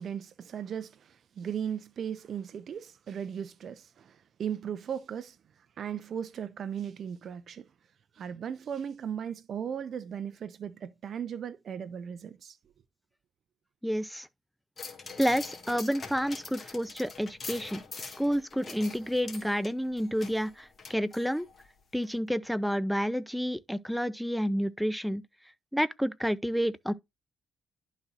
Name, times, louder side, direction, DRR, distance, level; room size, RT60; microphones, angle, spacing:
voice 1, 0.0-5.4 5.8-7.7 8.1-12.6, right 8 dB, 55° right, 0.5 m, -37 dB
voice 2, 13.8-14.3 15.2-21.5 21.9-25.2 25.7-26.9, equal, ahead, 0.5 m, -30 dB
sound 1, 14.8-21.7 22.0-22.1, left 4 dB, 35° left, 1.8 m, -44 dB
11.5 x 4.1 x 2.5 m
cardioid pair, 90°, 0 cm